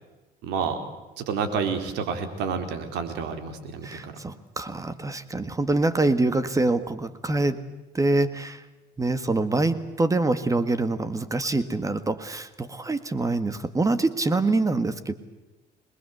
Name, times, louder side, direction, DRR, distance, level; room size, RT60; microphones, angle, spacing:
voice 1, 0.4-0.8 1.2-4.1, right 6 dB, 90° right, 8 dB, 4.1 m, -29 dB
voice 2, 3.8-7.6 7.9-8.6 9.0-15.1, right 2 dB, 20° right, 13 dB, 1.8 m, -25 dB
27.0 x 21.0 x 8.0 m, 1.1 s
cardioid pair, 110°, 17 cm